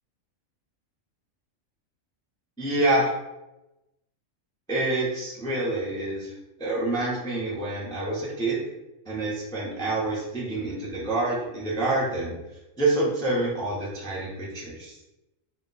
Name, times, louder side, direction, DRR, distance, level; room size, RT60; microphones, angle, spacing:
voice 1, 2.6-3.1 4.7-6.3 6.6-8.6 9.1-12.4 12.8-15.0, right 2 dB, 5° left, -6 dB, 0.3 m, -27 dB
2.2 x 2.2 x 3.8 m, 0.97 s
omnidirectional pair, 1.4 m